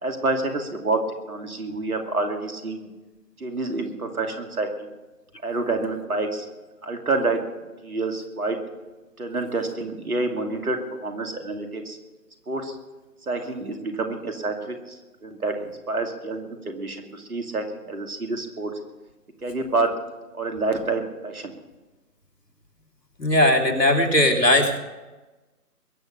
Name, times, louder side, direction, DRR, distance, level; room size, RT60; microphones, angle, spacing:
voice 1, 0.0-1.0 1.3-2.9 3.4-4.9 5.4-6.5 6.8-7.4 7.8-8.6 9.2-12.0 12.5-12.7 13.2-18.7 19.4-19.9 20.3-21.5, right 3 dB, 65° right, 4 dB, 2.7 m, -28 dB
voice 2, 23.2-24.8, left 1 dB, 90° left, 2 dB, 3.0 m, -18 dB
22.0 x 8.2 x 6.7 m, 1.2 s
figure-of-eight pair, 155°, 47 cm